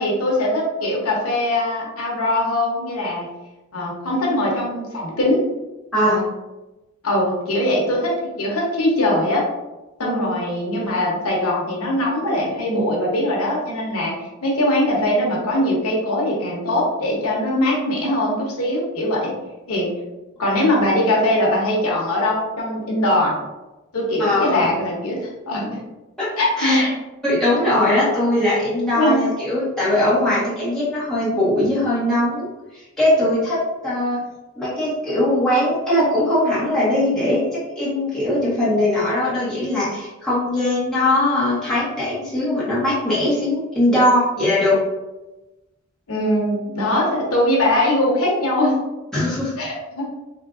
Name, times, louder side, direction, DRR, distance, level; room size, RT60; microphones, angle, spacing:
voice 1, 0.0-3.3 3.7-5.4 5.9-6.3 7.0-8.1 8.4-9.4 10.0-14.2 14.4-19.3 19.7-19.9 20.4-23.4 23.9-25.8 26.4-26.9 28.9-29.3 46.1-48.8 49.6-50.1, left 1 dB, 80° left, -3 dB, 0.9 m, -21 dB
voice 2, 10.0-10.3 24.2-24.6 26.2-26.3 26.6-26.9 27.2-32.5 32.7-34.2 34.6-37.4 37.8-44.8 49.1-49.5, left 1 dB, 5° left, -11 dB, 1.1 m, -20 dB
3.6 x 2.6 x 2.4 m, 1.1 s
head